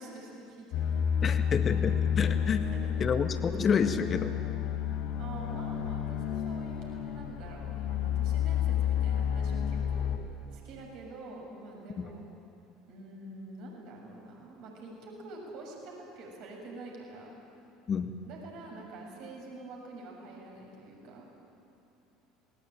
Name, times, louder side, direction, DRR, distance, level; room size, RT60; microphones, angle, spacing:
voice 1, 0.0-1.1 2.7-3.1 5.2-10.1 10.5-12.2 12.9-17.3 18.2-21.3, right 2 dB, 55° right, 0 dB, 7.1 m, -46 dB
sound 1, 0.7-10.2, left 8 dB, 60° left, 2.1 m, -30 dB
voice 2, 1.2-2.6 3.0-4.3 17.9-18.1, left 6 dB, 35° left, 8 dB, 1.7 m, -29 dB
27.0 x 20.5 x 9.2 m, 2.7 s
figure-of-eight pair, 65°, 0 cm